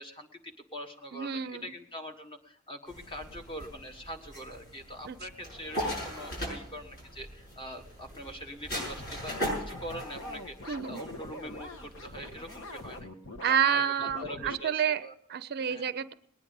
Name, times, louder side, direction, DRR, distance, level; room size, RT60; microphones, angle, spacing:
voice 1, 0.0-13.1 13.4-15.1 15.7-15.9, equal, 25° left, 4 dB, 1.6 m, -43 dB
voice 2, 1.1-1.7 5.1-5.2 10.7-11.0 13.4-15.0 15.3-16.1, right 8 dB, 45° right, 13 dB, 0.5 m, -29 dB
sound 1, 2.9-13.0, equal, 45° left, 6.6 m, -40 dB
sound 2, 8.7-14.6, left 2 dB, 60° left, 1.3 m, -44 dB
20.0 x 9.8 x 5.3 m, 0.72 s
head